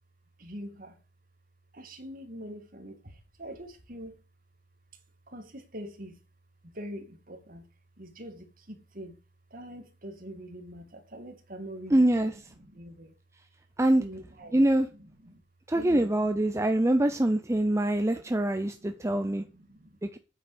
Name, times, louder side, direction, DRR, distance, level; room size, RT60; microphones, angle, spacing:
voice 1, 0.4-1.0 1.7-4.1 5.3-6.2 6.6-7.7 8.0-9.2 9.5-12.0 12.3-13.1 14.0-14.7 15.2-15.4 15.7-16.7 17.7-20.0, equal, 50° right, 2.4 m, -44 dB
voice 2, 11.9-12.3 13.8-14.0 14.5-14.9 15.7-19.4 20.0-20.2, right 1 dB, 15° right, 0.6 m, -24 dB
9.1 x 7.9 x 5.1 m
head